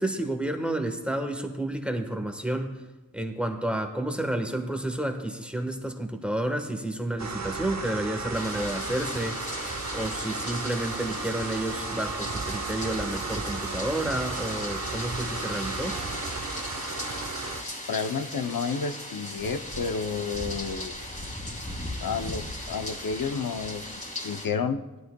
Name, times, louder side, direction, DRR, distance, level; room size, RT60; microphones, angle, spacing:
voice 1, 0.0-2.8 3.1-16.0, right 1 dB, 5° right, 5 dB, 1.2 m, -30 dB
sound 1, 7.2-17.6, right 3 dB, 55° right, 0.8 m, -34 dB
sound 2, 8.3-24.5, left 1 dB, 20° left, 2.1 m, -37 dB
voice 2, 17.9-21.0 22.0-24.8, left 5 dB, 90° left, 8 dB, 0.6 m, -31 dB
18.0 x 12.0 x 2.2 m, 1.1 s
wide cardioid pair, 70°, 34 cm